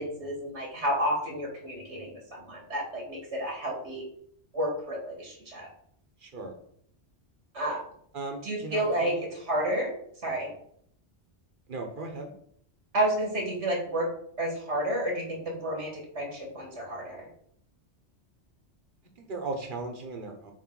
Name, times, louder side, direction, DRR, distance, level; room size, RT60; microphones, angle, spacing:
voice 1, 0.0-4.0 4.5-5.7 7.5-7.8 8.4-9.9 10.2-10.5 12.9-14.1 14.4-17.3, right 1 dB, 90° right, -1 dB, 2.3 m, -30 dB
voice 2, 6.2-6.5 8.1-9.2 11.7-12.3 19.2-20.5, right 3 dB, 50° right, 4 dB, 1.2 m, -37 dB
7.2 x 3.3 x 4.7 m, 0.65 s
omnidirectional pair, 1.2 m